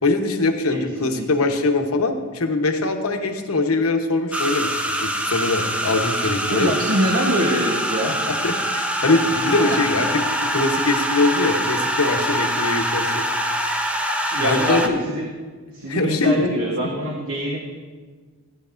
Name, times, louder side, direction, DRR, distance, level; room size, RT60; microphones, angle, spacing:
voice 1, 0.0-6.7 8.0-10.2 10.5-13.3 14.4-15.0 15.9-16.4, left 3 dB, 75° left, 4 dB, 1.0 m, -22 dB
voice 2, 0.7-1.3 6.5-8.2 9.6-9.8 14.3-15.3 15.7-17.6, right 1 dB, 65° right, -1 dB, 1.1 m, -24 dB
sound 1, 4.3-14.9, equal, 5° right, 0.6 m, -24 dB
15.0 x 9.9 x 2.5 m, 1.4 s
head